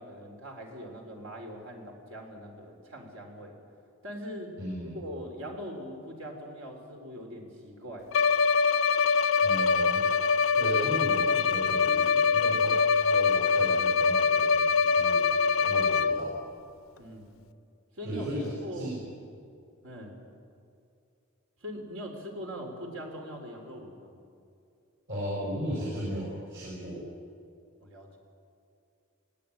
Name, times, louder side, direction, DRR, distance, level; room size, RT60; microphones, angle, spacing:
voice 1, 0.0-3.5 4.0-4.5 4.9-8.3 17.0-17.3 17.9-18.3 18.6-19.0 19.8-20.2 21.6-24.1 27.8-28.2, equal, 85° right, 2 dB, 4.0 m, -41 dB
voice 2, 4.6-5.0 9.4-10.1 10.5-12.8 13.1-16.4 18.0-19.0 25.1-27.1, equal, 65° right, -4 dB, 5.1 m, -36 dB
Bowed string instrument, 8.1-16.4, left 5 dB, 90° left, 0.5 m, -24 dB
21.0 x 17.0 x 8.8 m, 2.5 s
head